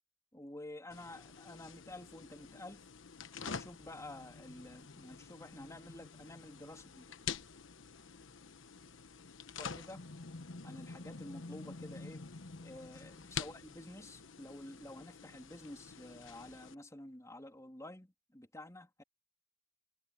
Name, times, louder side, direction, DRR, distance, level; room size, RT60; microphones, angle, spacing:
voice 1, 0.3-2.8 3.4-7.1 9.6-10.1 10.6-12.2 12.6-19.0, left 1 dB, 15° left, 3.4 m, -50 dB
sound 1, 0.9-16.7, left 5 dB, 80° left, 1.1 m, -47 dB
head